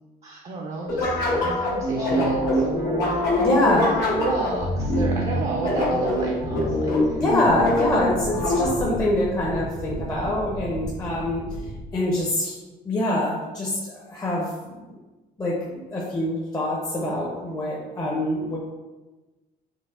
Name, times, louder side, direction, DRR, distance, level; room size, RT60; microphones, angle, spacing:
voice 1, 0.2-3.2 4.2-7.2, right 3 dB, 40° right, 0 dB, 0.4 m, -32 dB
sound 1, 0.9-9.0, left 1 dB, 85° left, 1.1 m, -24 dB
sound 2, 1.0-6.8, right 1 dB, 70° right, 0.7 m, -41 dB
voice 2, 3.4-3.9 7.2-11.4 11.9-12.6 12.9-14.9 15.4-18.6, left 1 dB, 20° left, -5 dB, 0.6 m, -25 dB
sound 3, 7.2-12.2, right 2 dB, 90° right, 1.4 m, -35 dB
4.5 x 2.0 x 2.3 m, 1.2 s
cardioid pair, 110°, 17 cm